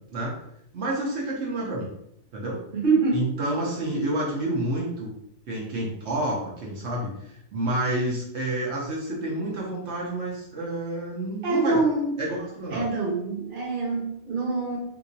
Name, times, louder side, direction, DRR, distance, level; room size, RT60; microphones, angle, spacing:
voice 1, 0.7-1.9 2.3-2.6 3.1-5.1 5.5-11.8 12.2-12.9, right 1 dB, 75° right, -3 dB, 1.0 m, -29 dB
voice 2, 2.7-3.3 11.4-12.1 12.7-14.8, right 3 dB, 50° right, -2 dB, 1.0 m, -25 dB
3.3 x 2.9 x 2.6 m, 0.75 s
omnidirectional pair, 1.2 m